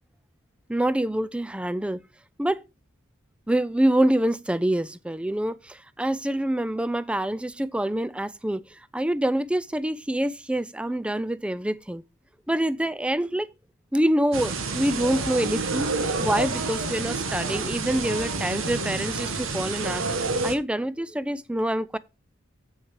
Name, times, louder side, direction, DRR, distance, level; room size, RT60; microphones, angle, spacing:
voice 1, 0.7-2.0 2.4-2.6 3.5-12.0 12.5-13.5 13.9-22.0, right 1 dB, 5° right, 0.3 m, -26 dB
sound 1, 14.3-20.5, right 3 dB, 80° right, 1.4 m, -29 dB
8.1 x 6.4 x 4.7 m
head